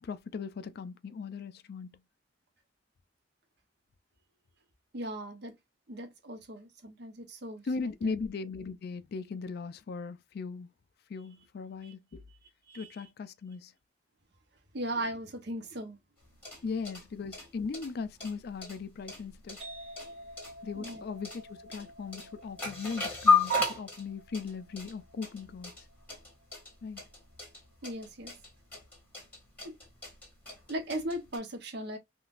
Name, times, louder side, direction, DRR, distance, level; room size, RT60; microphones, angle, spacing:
voice 1, 0.0-2.0 7.6-10.7 11.1-12.2 12.7-13.7 16.6-19.6 20.6-25.7 26.8-27.0, left 5 dB, 60° left, 0.4 m, -38 dB
voice 2, 4.9-5.5 5.9-8.1 11.8-11.9 12.7-12.9 14.7-16.0 20.8-21.0 27.8-28.3 29.6-29.8 30.7-32.0, right 1 dB, 60° right, 0.8 m, -38 dB
sound 1, 16.2-31.4, left 3 dB, 10° left, 1.8 m, -34 dB
sound 2, 19.6-27.0, right 1 dB, 35° right, 1.0 m, -51 dB
3.7 x 2.4 x 2.4 m
head